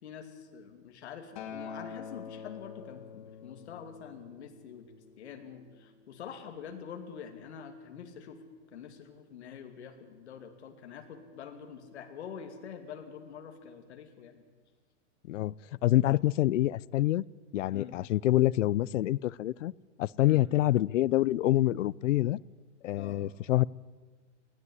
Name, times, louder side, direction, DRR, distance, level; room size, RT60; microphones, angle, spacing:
voice 1, 0.0-4.9 5.2-8.4 8.7-14.4 17.7-17.9 20.3-20.4 23.0-23.2, left 7 dB, 65° left, 2.6 m, -46 dB
Acoustic guitar, 1.4-5.7 6.5-6.6, left 6 dB, 40° left, 2.3 m, -46 dB
voice 2, 15.8-17.2 17.5-19.7 20.0-22.4 22.8-23.7, left 15 dB, 85° left, 0.6 m, -26 dB
19.5 x 14.5 x 9.6 m
supercardioid pair, 180°, 36 cm